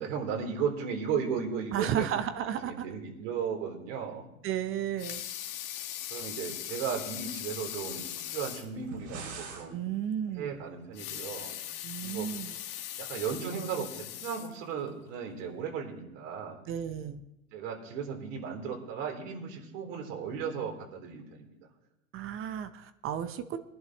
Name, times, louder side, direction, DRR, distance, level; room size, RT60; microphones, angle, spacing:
voice 1, 0.0-2.1 2.6-4.2 6.1-8.1 8.3-9.8 10.4-11.5 12.0-12.3 13.0-16.6 17.5-21.5, right 6 dB, 60° right, 1 dB, 3.5 m, -35 dB
voice 2, 1.7-2.8 4.4-5.2 9.7-10.6 11.8-12.6 16.7-17.3 22.1-23.6, right 9 dB, 30° right, 11 dB, 0.7 m, -33 dB
Water tap faucet / Sink (filling or washing) / Liquid, 4.8-8.7 9.2-9.3 9.6-9.7 10.8-15.0 15.5-15.6, left 11 dB, 50° left, 1.6 m, -40 dB
sound 1, 8.7-9.7, right 4 dB, 75° right, 5.9 m, -42 dB
20.5 x 11.0 x 3.0 m, 0.89 s
hypercardioid pair, 100°, 43 cm